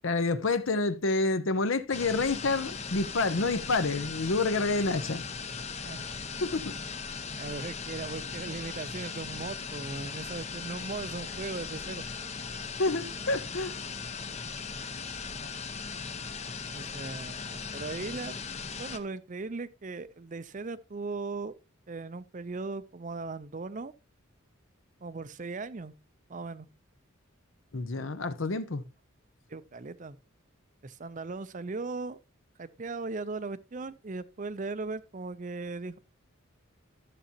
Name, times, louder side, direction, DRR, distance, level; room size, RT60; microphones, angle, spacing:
voice 1, 0.0-5.2 6.4-6.7 12.8-13.7 27.7-28.8, left 3 dB, 65° left, 0.8 m, -28 dB
sound 1, 1.9-19.0, left 5 dB, 30° left, 0.7 m, -38 dB
voice 2, 5.7-6.1 7.4-12.0 16.7-18.4 18.8-21.5 21.9-23.9 25.0-25.9 26.3-26.7 29.5-30.2 30.8-32.2 32.6-36.0, right 3 dB, 35° right, 0.5 m, -38 dB
13.0 x 6.9 x 2.9 m
head